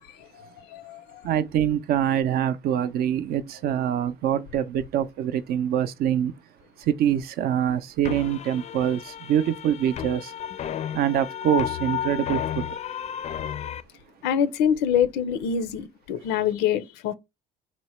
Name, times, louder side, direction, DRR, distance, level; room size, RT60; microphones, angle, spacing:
voice 1, 0.0-1.3 14.2-17.1, left 8 dB, 90° left, 0.5 m, -26 dB
voice 2, 1.2-6.3 6.9-9.0 9.3-10.2 10.9-12.7, right 10 dB, 65° right, 0.5 m, -24 dB
sound 1, 8.0-13.8, left 10 dB, 40° left, 0.4 m, -32 dB
4.3 x 2.1 x 4.2 m
cardioid pair, 110°, 17 cm